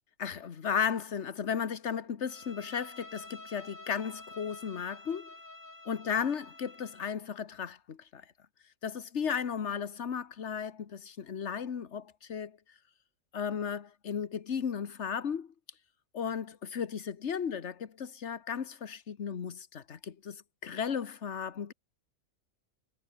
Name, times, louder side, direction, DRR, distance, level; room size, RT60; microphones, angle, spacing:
voice 1, 0.2-5.3 5.9-8.2 8.8-12.6 13.3-15.5 16.1-21.7, left 7 dB, 60° left, 1.6 m, -35 dB
Bowed string instrument, 2.2-7.2, left 2 dB, 80° left, 5.8 m, -49 dB
omnidirectional pair, 1.4 m